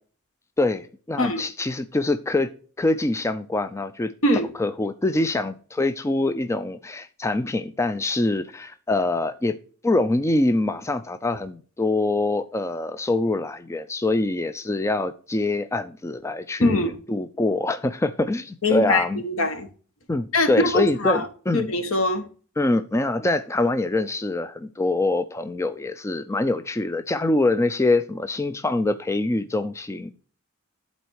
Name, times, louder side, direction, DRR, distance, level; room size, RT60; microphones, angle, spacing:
voice 1, 0.6-2.5 2.8-4.1 4.5-9.6 9.8-19.2 20.1-21.7 22.6-30.1, left 2 dB, 15° left, 0.4 m, -24 dB
voice 2, 16.6-16.9 18.6-19.7 20.3-21.2 21.5-22.2, left 2 dB, 70° left, 1.3 m, -22 dB
11.0 x 4.3 x 4.6 m
head